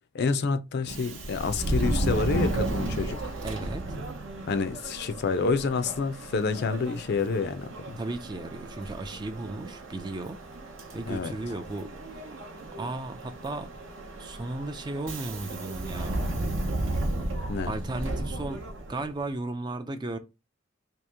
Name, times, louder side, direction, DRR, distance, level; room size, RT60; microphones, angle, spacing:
voice 1, 0.1-3.2 4.5-8.0 11.1-11.3 17.5-17.7, left 4 dB, 55° left, 0.4 m, -28 dB
Subway metro underground, 0.8-19.2, right 2 dB, 65° right, 0.7 m, -34 dB
voice 2, 3.4-3.8 8.0-10.4 10.9-11.9 12.2-12.4 12.8-13.7 14.2-16.2 17.7-18.6 18.9-20.2, right 2 dB, 20° right, 0.3 m, -35 dB
2.9 x 2.8 x 3.4 m
head